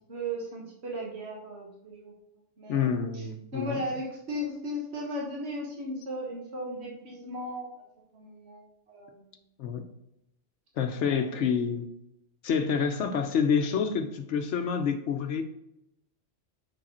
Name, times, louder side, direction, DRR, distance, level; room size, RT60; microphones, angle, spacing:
voice 1, 0.1-2.1 2.6-3.2 3.5-7.7 8.1-9.3 11.0-11.5, equal, 65° right, -3 dB, 1.8 m, -36 dB
voice 2, 2.7-3.8 9.6-9.8 10.8-11.9 12.4-15.4, left 6 dB, 80° left, 7 dB, 1.1 m, -28 dB
6.3 x 5.2 x 4.3 m, 0.82 s
omnidirectional pair, 1.2 m